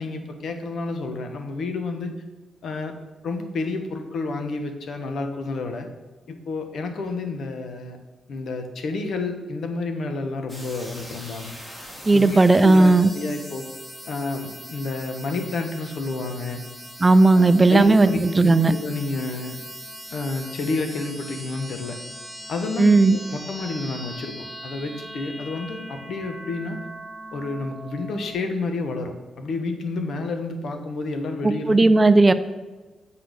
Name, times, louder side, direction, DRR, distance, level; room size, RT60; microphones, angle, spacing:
voice 1, 0.0-2.1 2.6-3.0 3.2-5.9 6.3-8.0 8.3-11.5 12.1-12.4 12.6-13.7 14.1-16.6 17.3-19.6 20.1-22.0 22.5-26.8 27.3-31.9, left 3 dB, 70° left, 6 dB, 1.1 m, -30 dB
sound 1, 10.5-28.3, equal, 15° left, 2.0 m, -40 dB
voice 2, 12.1-13.1 17.0-18.1 18.4-18.7 22.8-23.2 31.7-32.3, right 3 dB, 25° right, 12 dB, 0.4 m, -15 dB
7.8 x 4.1 x 6.6 m, 1.2 s
cardioid pair, 95°, 0 cm